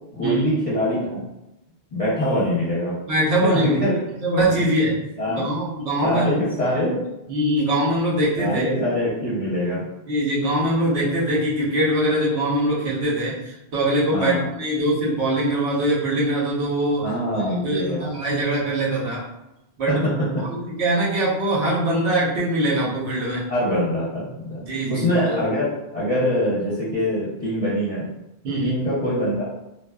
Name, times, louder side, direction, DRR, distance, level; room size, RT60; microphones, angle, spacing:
voice 1, 0.1-1.2 1.9-3.0 3.5-3.9 4.4-4.5 5.2-5.4 6.0-7.0 8.4-9.9 14.1-14.5 17.0-18.1 19.9-20.0 23.5-24.6 24.9-25.6 25.9-28.1 28.6-29.4, equal, 40° left, -10 dB, 0.7 m, -23 dB
voice 2, 3.1-3.8 4.2-4.9 5.3-6.3 7.3-8.7 10.1-17.1 17.6-19.2 19.8-20.0 20.4-23.4 24.7-25.4 28.4-28.8, right 1 dB, 75° right, -6 dB, 1.1 m, -22 dB
2.5 x 2.3 x 2.2 m, 0.92 s
omnidirectional pair, 1.1 m